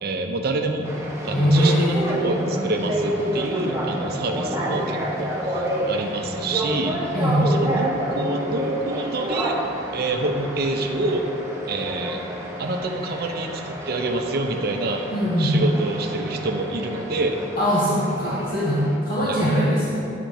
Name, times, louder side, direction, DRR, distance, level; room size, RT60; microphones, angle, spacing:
voice 1, 0.0-0.9 1.2-7.0 7.4-9.6 9.9-11.2 11.7-12.2 12.6-15.1 15.4-17.3 19.2-19.4, right 2 dB, 50° right, 4 dB, 0.6 m, -27 dB
sound 1, 0.8-19.0, right 1 dB, 15° right, 0.9 m, -29 dB
voice 2, 1.3-2.2 7.1-7.5 15.1-15.6 17.6-20.0, equal, 45° left, -7 dB, 1.2 m, -21 dB
8.9 x 5.1 x 4.4 m, 2.6 s
head